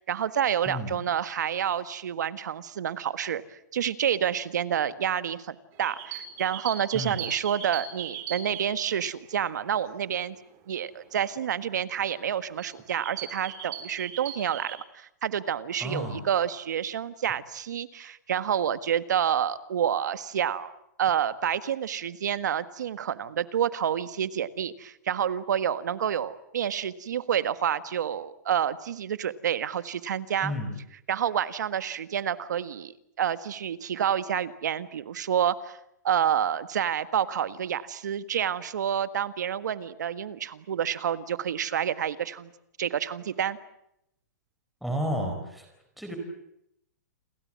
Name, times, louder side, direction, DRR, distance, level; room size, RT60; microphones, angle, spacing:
voice 1, 0.0-10.3 10.7-30.5 31.1-35.8 36.0-42.5 42.8-43.6, right 9 dB, 75° right, 13 dB, 1.6 m, -29 dB
sound 1, 5.7-9.8 10.3-10.4 11.4-11.5 12.0-12.3 12.6-14.8, right 9 dB, 25° right, 3.8 m, -39 dB
voice 2, 15.8-16.2 30.4-30.7 44.8-45.7 46.0-46.2, equal, ahead, 2 dB, 4.6 m, -31 dB
29.5 x 23.0 x 7.6 m, 0.78 s
hypercardioid pair, 165°, 10 cm